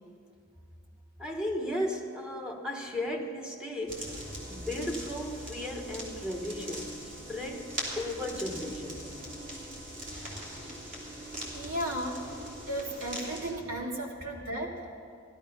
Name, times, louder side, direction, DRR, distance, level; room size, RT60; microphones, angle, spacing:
voice 1, 1.2-9.2, left 1 dB, 5° right, 0 dB, 1.1 m, -36 dB
sound 1, 3.9-13.5, equal, 40° right, 2.9 m, -41 dB
voice 2, 11.1-12.3 12.7-14.8, right 1 dB, 85° right, -2 dB, 2.5 m, -35 dB
15.5 x 12.5 x 5.5 m, 2.3 s
head